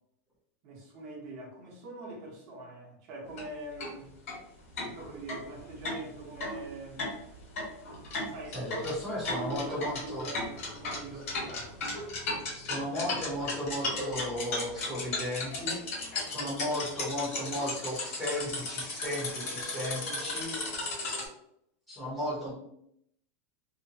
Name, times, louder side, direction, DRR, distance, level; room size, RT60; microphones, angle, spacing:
voice 1, 0.6-4.1 4.7-7.1 8.2-8.6 9.2-11.8 16.4-16.5, right 2 dB, 35° right, -3 dB, 0.9 m, -44 dB
sound 1, 3.3-3.4 3.8-3.9 4.3-4.4 4.8-21.3, left 2 dB, 75° left, 1.5 m, -35 dB
voice 2, 8.5-10.3 12.5-15.8 16.3-20.8 21.9-22.5, left 1 dB, ahead, -9 dB, 0.8 m, -35 dB
2.9 x 2.1 x 2.7 m, 0.73 s
supercardioid pair, 175°, 8 cm